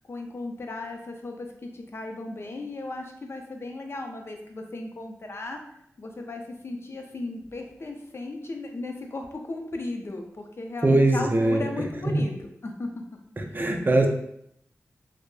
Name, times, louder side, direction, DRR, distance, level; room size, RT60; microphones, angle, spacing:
voice 1, 0.1-5.6 6.0-12.9 13.4-13.6, left 2 dB, 50° left, 3 dB, 0.5 m, -36 dB
voice 2, 10.8-11.6 12.1-12.2 13.5-14.1, right 2 dB, 35° right, 4 dB, 0.4 m, -21 dB
2.9 x 2.0 x 2.2 m, 0.74 s
cardioid pair, 45°, 6 cm